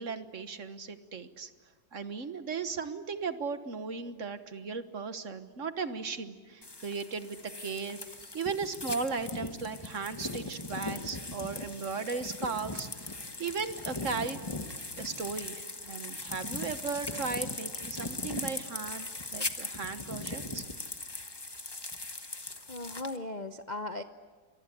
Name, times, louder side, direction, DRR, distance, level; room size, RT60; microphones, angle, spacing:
voice 1, 0.0-1.5 1.9-8.0 8.3-14.4 15.0-20.6, right 5 dB, 45° right, 10 dB, 1.4 m, -36 dB
sound 1, 6.6-23.2, left 2 dB, 15° left, 0.8 m, -39 dB
voice 2, 22.7-24.0, left 2 dB, 85° left, 7 dB, 0.4 m, -37 dB
28.5 x 23.5 x 8.4 m, 1.5 s
omnidirectional pair, 2.2 m